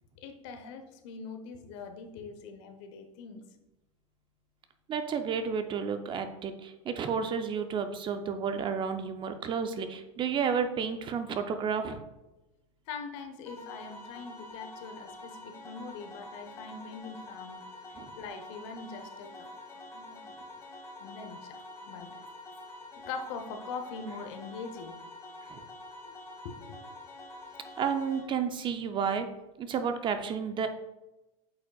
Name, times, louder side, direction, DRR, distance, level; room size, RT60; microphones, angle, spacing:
voice 1, 0.2-3.4 12.9-17.6 18.1-20.3 21.0-22.1 23.1-25.0 26.0-26.1 26.4-26.8, left 4 dB, 60° left, 7 dB, 0.9 m, -43 dB
voice 2, 4.9-12.0 17.9-18.1 25.5-25.6 27.8-29.3 29.6-30.7, right 6 dB, 30° right, 8 dB, 0.5 m, -31 dB
sound 1, 13.5-28.2, left 2 dB, 15° left, 1.4 m, -47 dB
8.3 x 4.8 x 2.3 m, 0.99 s
hypercardioid pair, 115°, 17 cm